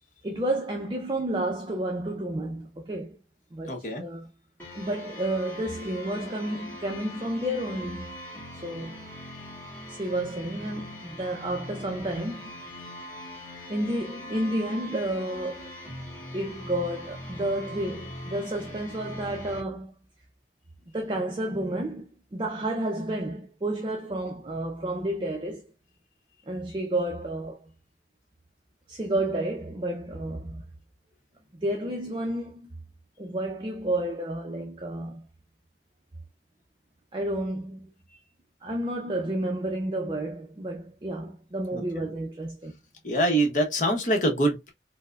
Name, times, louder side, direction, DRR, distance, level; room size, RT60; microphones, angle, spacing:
voice 1, 0.2-3.2 3.5-4.3 4.7-8.1 8.6-9.0 9.9-12.5 13.7-15.7 16.3-19.9 20.9-25.7 26.5-27.7 28.9-30.6 31.6-32.6 33.2-35.3 37.1-37.9 38.6-42.7, right 1 dB, 30° right, 0.4 m, -31 dB
voice 2, 3.7-4.0 41.7-42.1 43.0-44.7, right 1 dB, 45° left, 0.8 m, -25 dB
sound 1, 4.6-19.6, left 1 dB, 10° left, 1.4 m, -41 dB
4.6 x 2.0 x 2.2 m
head